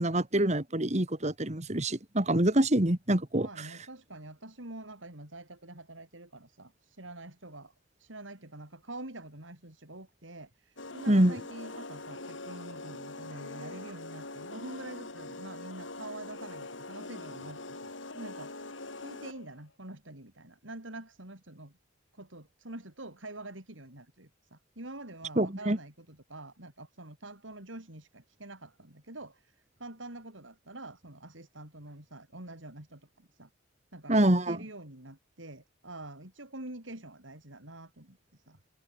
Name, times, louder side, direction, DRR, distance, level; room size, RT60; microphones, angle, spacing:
voice 1, 0.0-3.7 11.1-11.4 25.4-25.8 34.1-34.6, right 1 dB, 35° right, 2.4 m, -26 dB
voice 2, 3.4-7.7 8.0-21.7 22.1-33.5 33.9-34.2 34.4-38.6, right 2 dB, 85° right, 5.9 m, -46 dB
sound 1, 10.8-19.5, left 2 dB, 80° left, 5.8 m, -43 dB
head